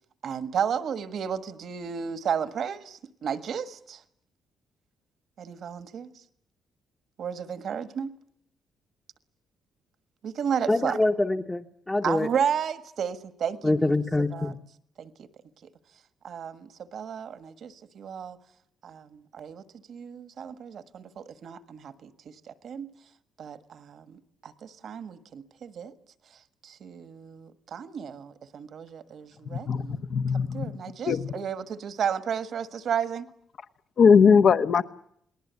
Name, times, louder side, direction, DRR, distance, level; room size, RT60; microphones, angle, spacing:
voice 1, 0.2-4.0 5.4-6.1 7.2-8.1 10.2-11.0 12.0-14.0 14.3-14.5 15.0-15.3 16.2-18.4 18.8-19.6 19.9-22.9 23.4-25.9 26.6-30.0 30.3-33.3, right 7 dB, 60° right, 1.6 m, -33 dB
voice 2, 10.7-12.3 13.6-14.6, left 2 dB, 15° left, 1.1 m, -25 dB
voice 3, 29.5-30.7 31.0-31.3 34.0-34.8, left 6 dB, 55° left, 1.2 m, -20 dB
29.0 x 19.5 x 8.3 m
cardioid pair, 90°, 0 cm